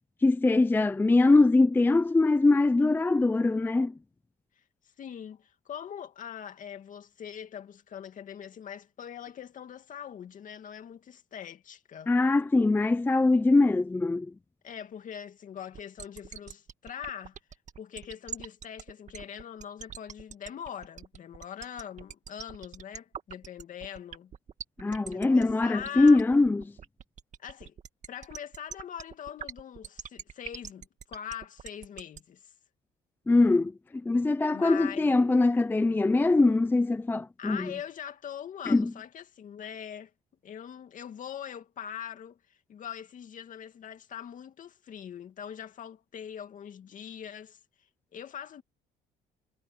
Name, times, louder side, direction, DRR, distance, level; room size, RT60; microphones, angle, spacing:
voice 1, 0.2-3.9 12.1-14.3 24.8-26.6 33.3-33.7 34.0-37.7 38.7-38.9, left 3 dB, 10° left, 0.5 m, -22 dB
voice 2, 5.0-12.1 14.6-17.4 17.8-24.3 25.1-26.2 27.4-27.7 28.1-32.5 34.5-35.2 37.4-40.1 40.4-47.6 48.1-48.6, left 9 dB, 50° left, 2.4 m, -42 dB
sound 1, 15.7-32.2, right 8 dB, 45° right, 1.9 m, -43 dB
cardioid pair, 110°, 17 cm